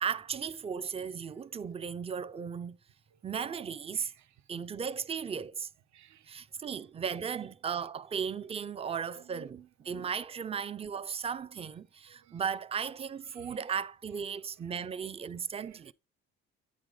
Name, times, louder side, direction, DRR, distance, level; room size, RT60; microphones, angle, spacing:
voice 1, 0.0-2.8 3.2-4.1 4.5-5.7 6.3-15.9, right 7 dB, 20° right, 0.3 m, -36 dB
voice 2, 3.9-4.3 5.9-6.3 9.2-9.7 10.4-10.5 12.0-12.4 13.3-13.6 14.6-14.7 15.3-15.9, right 13 dB, 65° right, 0.6 m, -57 dB
9.1 x 4.8 x 3.7 m
cardioid pair, 90°, 30 cm